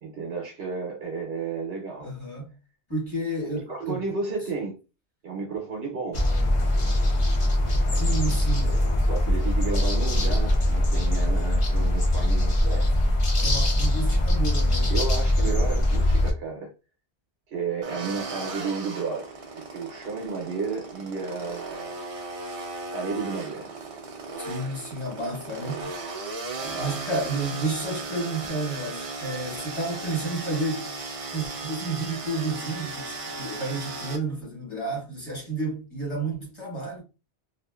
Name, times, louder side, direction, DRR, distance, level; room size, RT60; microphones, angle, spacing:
voice 1, 0.0-2.1 3.4-4.8 5.2-6.2 7.9-8.3 8.6-13.1 14.9-16.7 17.5-19.3 19.7-22.0 22.9-23.7 26.5-27.0, right 4 dB, 70° right, 0.9 m, -33 dB
voice 2, 2.0-2.5 2.9-4.1 7.9-8.8 13.4-14.9 24.4-25.9 26.8-30.9 31.3-37.0, right 2 dB, 25° left, 1.3 m, -31 dB
sound 1, 6.1-16.3, left 1 dB, 45° left, 0.4 m, -22 dB
sound 2, 17.8-34.2, right 3 dB, 45° right, 0.4 m, -36 dB
2.5 x 2.4 x 2.3 m
omnidirectional pair, 1.1 m